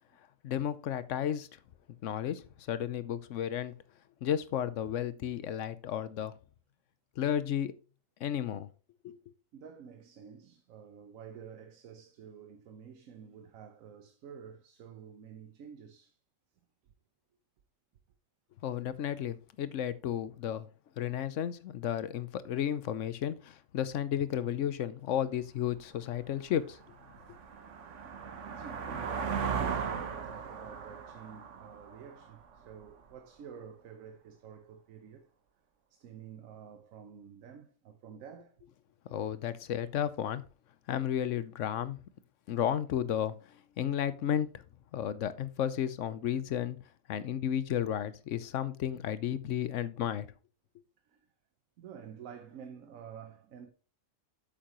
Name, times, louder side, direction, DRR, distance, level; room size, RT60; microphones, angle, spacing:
voice 1, 0.4-1.5 2.0-2.4 2.7-3.7 4.2-6.3 7.2-7.7 8.2-8.7 9.0-9.2 18.6-20.7 21.0-26.8 39.1-40.4 40.9-42.0 42.5-43.3 43.8-44.6 44.9-46.8 47.1-50.3, left 10 dB, 70° left, 1.0 m, -33 dB
voice 2, 9.5-16.2 28.4-29.4 29.7-35.3 35.9-38.6 48.4-48.5 51.1-51.2 51.8-53.7, right 7 dB, 90° right, 1.2 m, -50 dB
sound 1, 25.7-25.8 26.3-32.9, right 6 dB, 65° right, 1.3 m, -37 dB
8.6 x 7.3 x 3.0 m
omnidirectional pair, 1.4 m